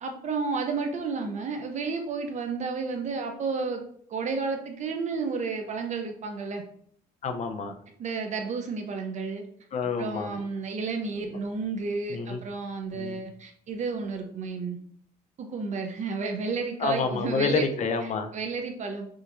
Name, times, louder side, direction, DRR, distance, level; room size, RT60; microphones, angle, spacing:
voice 1, 0.0-3.8 4.1-6.6 8.0-9.4 10.0-14.8 15.4-17.6 18.3-19.1, right 4 dB, 45° right, 4 dB, 0.7 m, -31 dB
voice 2, 7.2-7.7 9.7-10.4 12.1-12.4 12.9-13.2 16.8-18.3, left 4 dB, 45° left, 7 dB, 0.6 m, -28 dB
6.2 x 2.9 x 2.6 m, 0.63 s
cardioid pair, 110°, 17 cm